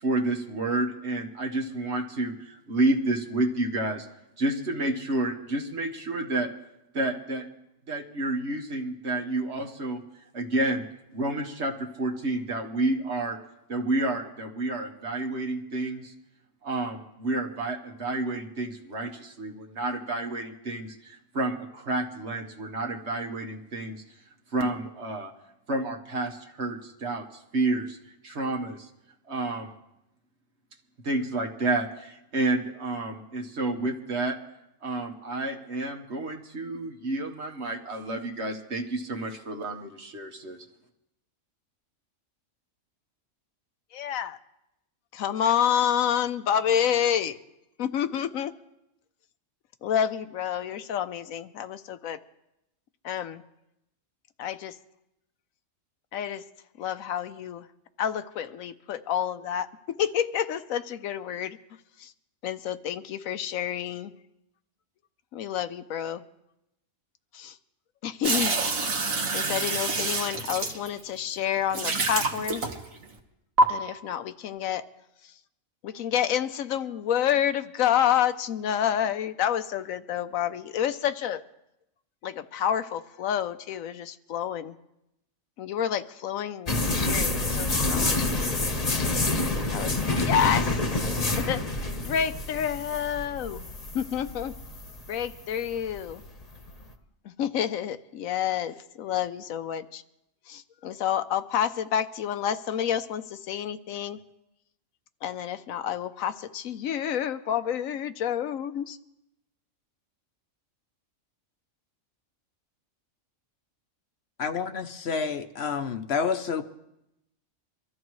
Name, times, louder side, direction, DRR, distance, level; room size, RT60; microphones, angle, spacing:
voice 1, 0.0-4.1 4.4-6.5 6.9-7.5 7.9-10.0 10.3-10.8 11.1-13.4 13.7-16.1 16.6-24.0 24.5-25.3 25.7-28.0 28.2-28.9 29.3-29.7 31.0-34.4 34.8-40.6, right 2 dB, 55° right, 4 dB, 1.6 m, -30 dB
voice 2, 43.9-44.4 45.1-47.4 47.8-48.5 49.8-52.2 53.0-53.4 54.4-54.8 56.1-56.4 56.8-57.7 58.0-61.6 62.0-62.1 62.4-64.1 65.3-66.2 67.3-67.6 68.0-68.6 69.3-72.6 73.7-74.8 75.8-81.4 82.2-84.7 85.6-86.8 87.0-88.2 88.9-89.1 89.7-91.0 91.4-91.7 92.0-93.7 93.9-94.5 95.1-96.2 97.2-100.0 100.5-104.2 105.2-109.0, left 9 dB, 85° left, 11 dB, 1.1 m, -29 dB
sound 1, 68.2-71.2 71.7-73.0 73.6-73.7, right 2 dB, 80° right, 1.9 m, -26 dB
sound 2, 86.7-96.8, left 2 dB, 30° left, 1.2 m, -28 dB
voice 3, 114.4-116.6, left 6 dB, 55° left, 8 dB, 0.9 m, -29 dB
24.5 x 13.5 x 3.1 m, 0.87 s
omnidirectional pair, 1.4 m